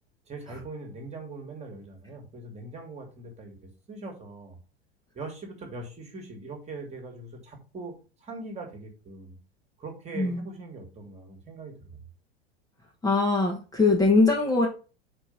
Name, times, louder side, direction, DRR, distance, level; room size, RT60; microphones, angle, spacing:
voice 1, 0.3-4.6 5.1-7.9 8.2-9.4 9.8-12.0, right 3 dB, 20° right, 3 dB, 1.9 m, -41 dB
voice 2, 10.1-10.5 13.0-14.7, left 3 dB, 10° left, -1 dB, 1.3 m, -22 dB
4.5 x 4.4 x 5.2 m, 0.34 s
figure-of-eight pair, 80°, 31 cm